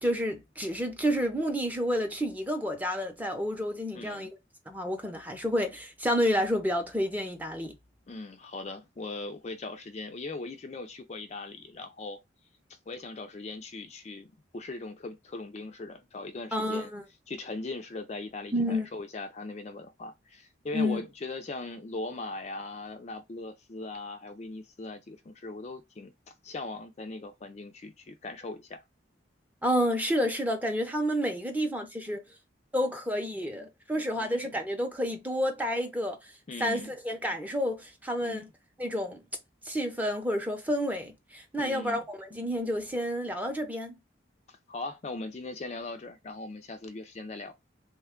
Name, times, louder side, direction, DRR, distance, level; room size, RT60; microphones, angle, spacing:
voice 1, 0.0-4.3 4.7-7.8 16.5-17.0 18.5-18.9 20.7-21.0 29.6-32.2 32.7-36.2 36.6-38.5 38.8-39.2 39.6-44.0, equal, 10° right, 0.6 m, -30 dB
voice 2, 3.9-4.3 8.1-12.2 12.9-16.9 17.3-26.1 26.4-28.8 34.2-34.5 36.5-36.9 38.2-38.4 41.6-42.0 44.5-47.5, left 3 dB, 35° left, 0.4 m, -39 dB
3.1 x 2.2 x 3.5 m
head